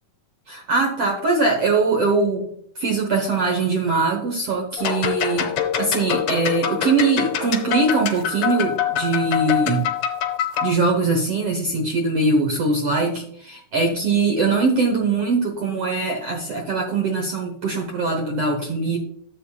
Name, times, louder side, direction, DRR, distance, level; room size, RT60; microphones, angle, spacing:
voice 1, 0.5-5.5 5.8-9.9 10.6-19.0, right 3 dB, 60° right, 1 dB, 1.6 m, -22 dB
sound 1, 4.8-10.7, left 9 dB, 65° left, 1.9 m, -25 dB
11.5 x 7.9 x 2.4 m, 0.66 s
omnidirectional pair, 3.9 m